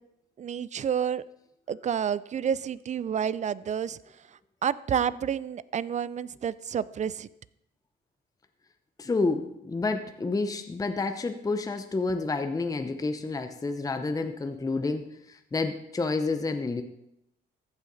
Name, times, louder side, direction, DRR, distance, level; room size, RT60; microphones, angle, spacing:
voice 1, 0.4-1.2 1.7-4.0 4.6-7.3, right 8 dB, 35° right, 19 dB, 0.4 m, -29 dB
voice 2, 9.0-16.8, left 3 dB, 20° left, 8 dB, 0.7 m, -29 dB
14.5 x 5.7 x 4.0 m, 0.81 s
cardioid pair, 90°, 20 cm